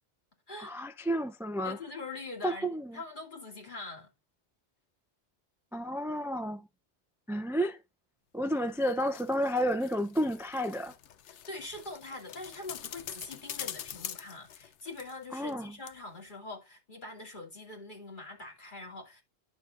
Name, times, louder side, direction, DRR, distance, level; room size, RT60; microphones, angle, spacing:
voice 1, 0.6-1.8 2.4-3.0 5.7-6.7 7.3-7.8 8.3-10.9 15.3-15.7, equal, 5° right, 0.3 m, -31 dB
voice 2, 1.6-4.1 11.3-19.2, left 2 dB, 45° left, 2.8 m, -43 dB
sound 1, 8.6-15.6 15.9-16.0, left 10 dB, 85° left, 1.0 m, -45 dB
11.0 x 6.7 x 2.5 m
omnidirectional pair, 1.2 m